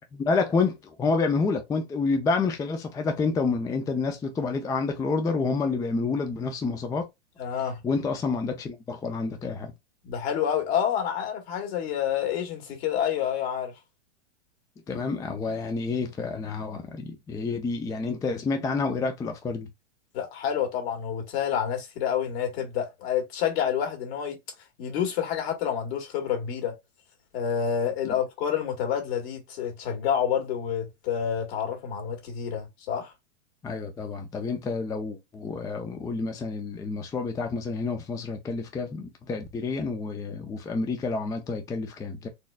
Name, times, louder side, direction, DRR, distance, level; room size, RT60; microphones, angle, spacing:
voice 1, 0.2-7.1 7.8-9.7 14.9-19.7 28.1-28.2 33.6-42.3, left 4 dB, 10° left, 0.4 m, -29 dB
voice 2, 7.4-7.8 10.0-13.7 20.1-24.4 24.8-26.8 27.3-33.1, left 8 dB, 60° left, 1.9 m, -28 dB
4.3 x 3.1 x 2.2 m
hypercardioid pair, 115°, 36 cm